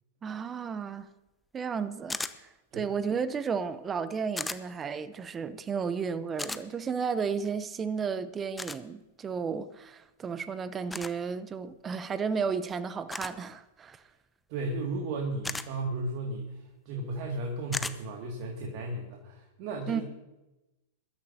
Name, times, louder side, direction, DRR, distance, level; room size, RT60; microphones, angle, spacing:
voice 1, 0.2-1.1 1.5-2.2 2.7-14.0 19.9-20.0, right 6 dB, 20° right, 0.8 m, -33 dB
sound 1, 2.1-2.4 4.4-4.6 6.4-6.6 8.6-8.8 10.9-11.1 13.1-13.4 15.4-15.7 17.7-18.0, left 3 dB, 10° left, 0.7 m, -34 dB
voice 2, 14.5-16.5 16.9-20.0, right 2 dB, 50° right, 2.2 m, -34 dB
22.5 x 12.5 x 2.8 m
hypercardioid pair, 100°, 0 cm